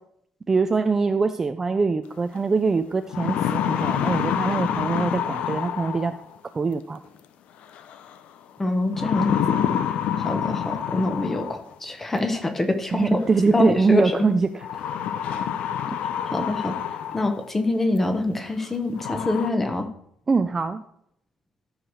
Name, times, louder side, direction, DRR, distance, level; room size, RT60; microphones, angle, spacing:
voice 1, 0.5-6.1 6.5-7.0 12.9-14.7 15.3-15.5 20.3-20.8, right 4 dB, 20° right, 9 dB, 0.4 m, -23 dB
sound 1, 2.4-2.5 2.9-6.3 7.7-8.1 8.9-11.7 13.0-13.1 14.6-17.5 18.0-18.1 18.6-18.7 19.0-19.5, left 9 dB, 65° left, 0.7 m, -27 dB
voice 2, 8.6-9.6 10.2-14.2 16.3-16.8 17.1-19.9, left 2 dB, 10° left, 7 dB, 1.0 m, -25 dB
13.0 x 4.8 x 6.3 m, 0.71 s
cardioid pair, 175°, 2 cm